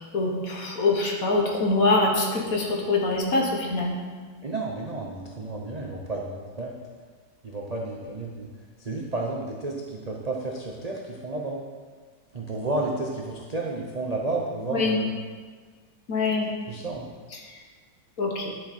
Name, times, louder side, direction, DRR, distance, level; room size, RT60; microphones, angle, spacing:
voice 1, 0.0-3.9 14.7-15.0 16.1-16.5 17.5-17.6 18.2-18.5, left 3 dB, 50° left, 0 dB, 1.6 m, -24 dB
voice 2, 4.4-6.8 7.4-8.5 8.8-11.6 12.3-15.1 16.7-17.1, right 2 dB, 45° right, -2 dB, 0.5 m, -31 dB
11.0 x 6.3 x 4.3 m, 1.5 s
omnidirectional pair, 2.0 m